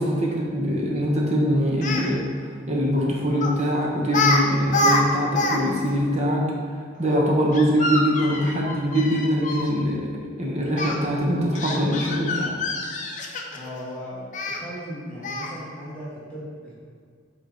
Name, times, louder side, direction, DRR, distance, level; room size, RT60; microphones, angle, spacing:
voice 1, 0.0-2.2 2.7-6.5 7.0-10.1 10.4-12.6, equal, 35° right, -3 dB, 1.0 m, -23 dB
Speech, 1.7-2.1 3.4-3.6 4.1-4.4 4.7-5.6 5.9-6.0 7.5-9.7 10.8-10.9 11.6-13.7 14.3-14.6 15.2-15.6, left 2 dB, 40° left, 0.6 m, -25 dB
voice 2, 13.5-16.7, equal, 5° left, -9 dB, 1.4 m, -37 dB
8.1 x 3.7 x 3.9 m, 2.1 s
head